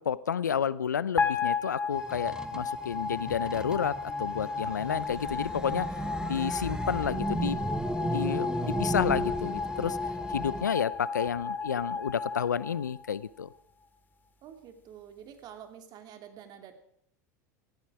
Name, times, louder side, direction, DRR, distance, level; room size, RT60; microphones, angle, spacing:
voice 1, 0.0-5.9 6.2-7.6 8.0-10.0 10.3-13.5, left 7 dB, 85° left, 20 dB, 0.6 m, -31 dB
sound 1, 1.2-13.4, left 5 dB, 20° left, 2.4 m, -34 dB
sound 2, 1.9-10.7, right 1 dB, 10° right, 1.3 m, -35 dB
voice 2, 14.4-16.7, right 9 dB, 45° right, 7 dB, 2.7 m, -48 dB
18.0 x 15.5 x 4.8 m, 0.67 s
hypercardioid pair, 85°, 9 cm